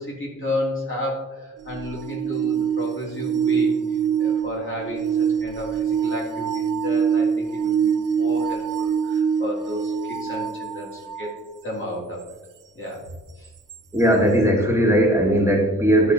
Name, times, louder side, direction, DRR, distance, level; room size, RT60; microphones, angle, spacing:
voice 1, 0.0-11.4 11.6-12.3 12.7-13.0 13.4-13.5, left 1 dB, 35° left, -4 dB, 3.3 m, -32 dB
sound 1, 1.6-11.4 13.7-13.8, right 7 dB, 75° right, 0.6 m, -24 dB
voice 2, 13.9-16.1, right 1 dB, 10° right, 0 dB, 1.8 m, -18 dB
12.5 x 5.2 x 4.1 m, 1.1 s
wide cardioid pair, 100°, 32 cm